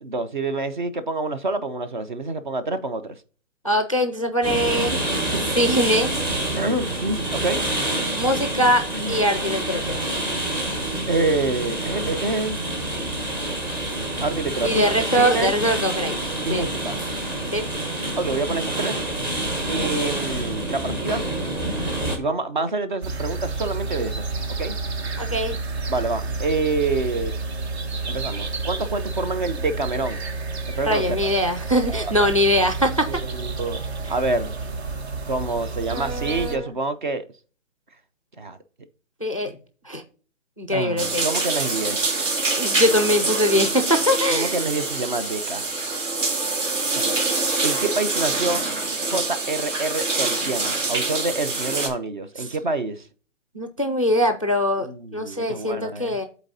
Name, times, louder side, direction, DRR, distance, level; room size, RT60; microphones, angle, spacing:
voice 1, 0.0-3.2 5.3-5.5 6.5-7.6 9.0-9.2 11.1-12.6 14.2-14.9 15.2-15.5 16.5-17.0 18.1-19.0 19.7-21.2 22.2-24.3 24.6-24.7 25.9-27.3 28.0-30.2 30.7-31.3 31.9-32.1 33.1-34.6 35.3-37.2 38.4-38.6 40.7-42.1 44.3-45.7 46.9-47.2 47.6-48.6 49.1-53.0 54.8-56.2, right 3 dB, 40° right, 0.6 m, -27 dB
voice 2, 3.6-4.9 5.5-6.1 8.2-10.0 14.6-16.2 16.5-16.6 17.5-17.6 25.2-25.6 30.9-33.1 35.9-36.7 39.2-39.5 39.9-40.0 40.6-41.3 42.6-44.6 52.5-52.6 53.5-54.9 55.1-56.3, equal, 30° left, 0.4 m, -22 dB
sound 1, 4.4-22.2, right 1 dB, 15° right, 1.0 m, -27 dB
sound 2, 23.0-36.6, right 4 dB, 55° right, 1.2 m, -30 dB
sound 3, 41.0-51.9, right 3 dB, 70° right, 2.4 m, -25 dB
11.0 x 4.1 x 2.7 m
hypercardioid pair, 165°, 39 cm